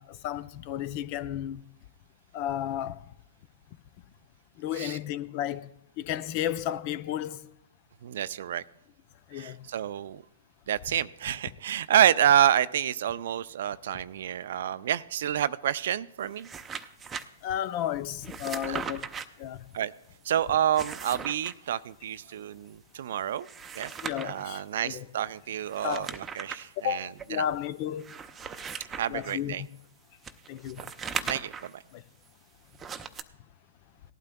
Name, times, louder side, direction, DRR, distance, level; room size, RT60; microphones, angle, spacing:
voice 1, 0.0-1.6 2.3-3.1 4.6-5.7 6.0-7.4 9.3-9.6 17.4-19.1 19.4-19.7 23.9-25.1 25.8-26.2 26.8-28.1 29.1-29.7 30.5-31.3 31.9-32.0, left 10 dB, 45° left, 0.5 m, -33 dB
voice 2, 8.0-8.6 9.3-10.2 10.7-16.5 18.6-18.8 19.7-19.9 20.3-23.5 23.8-23.9 24.2-27.5 29.0-29.6 31.3-31.8, right 10 dB, 65° right, 0.4 m, -28 dB
sound 1, 16.2-17.2 18.2-19.2 20.6-21.5 23.3-24.4 25.6-26.6 27.2-27.3 28.0-29.4 30.2-31.7 32.7-33.2, right 6 dB, 15° right, 0.6 m, -38 dB
18.5 x 12.0 x 2.3 m
hypercardioid pair, 115°, 0 cm